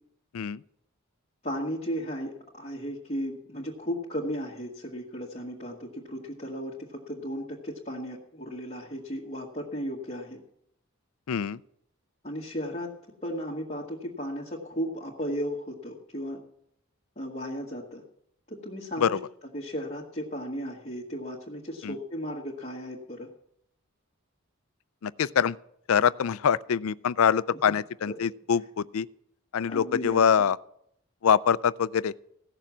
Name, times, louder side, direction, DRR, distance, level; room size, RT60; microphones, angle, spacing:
voice 1, 1.4-10.4 12.2-12.9 13.2-16.4 17.2-18.0 18.5-19.2 19.5-23.3 28.1-28.2 29.7-30.3, equal, 30° left, 1.7 m, -35 dB
voice 2, 11.3-11.6 19.0-19.2 21.8-22.0 25.0-25.6 25.9-29.1 29.5-30.6 31.2-32.1, left 7 dB, 75° left, 0.4 m, -24 dB
16.5 x 6.8 x 7.3 m
head